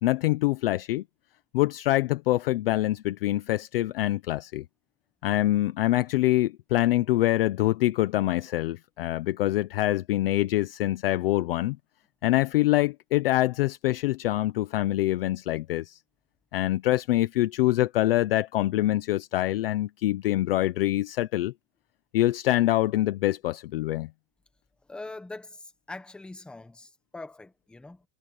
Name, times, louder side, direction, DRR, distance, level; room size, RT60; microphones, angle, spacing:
voice 1, 0.0-1.0 1.5-4.6 5.2-11.8 12.2-16.0 16.5-21.5 22.1-24.1, left 16 dB, 40° left, 0.5 m, -25 dB
voice 2, 24.9-28.0, left 2 dB, ahead, 0.8 m, -42 dB
supercardioid pair, 175°, 48 cm